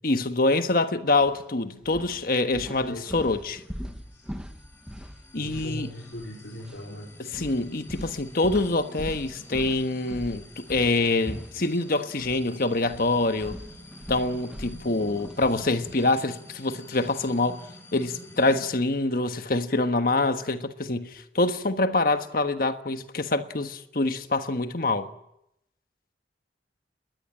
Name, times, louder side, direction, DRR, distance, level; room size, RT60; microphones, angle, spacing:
voice 1, 0.0-3.6 5.3-5.9 7.2-13.6 14.1-17.6 17.9-25.1, left 2 dB, 50° left, 1.4 m, -25 dB
sound 1, 1.2-1.4 1.8-6.3 6.6-6.8 7.3-12.4 12.7-16.2, equal, 5° right, 1.2 m, -41 dB
sound 2, 3.2-18.7, left 1 dB, 15° left, 4.4 m, -49 dB
voice 2, 3.8-4.3 5.3-7.1 14.9-15.1, left 1 dB, 80° left, 4.4 m, -39 dB
21.0 x 20.0 x 8.8 m
head